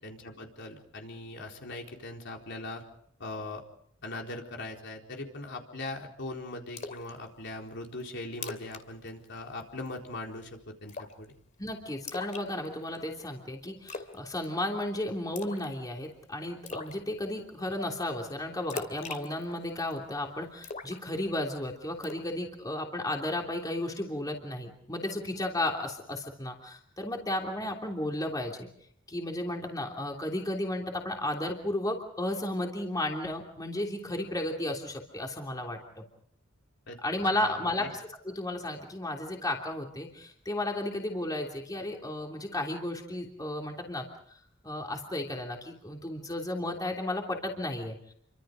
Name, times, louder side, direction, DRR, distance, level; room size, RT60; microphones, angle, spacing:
voice 1, 0.0-2.8 3.2-3.6 4.0-11.3 36.9-37.0 37.3-37.9, left 2 dB, 60° left, 1 dB, 4.2 m, -40 dB
Splash splatter, 6.8-7.1 7.5-7.6 8.0-8.1 8.3-8.8 9.1-9.3 9.6-10.0 10.9-11.3 12.1-13.0 13.9-14.2 14.4-14.8 15.4-15.7 16.0-16.1 16.7-17.0 18.7-20.0 20.6-21.6 22.0-22.3, left 4 dB, 35° left, 2.7 m, -40 dB
voice 2, 11.6-28.7 29.1-36.0 37.0-48.1, left 1 dB, 20° left, 1 dB, 3.1 m, -34 dB
29.0 x 25.0 x 5.1 m, 0.65 s
head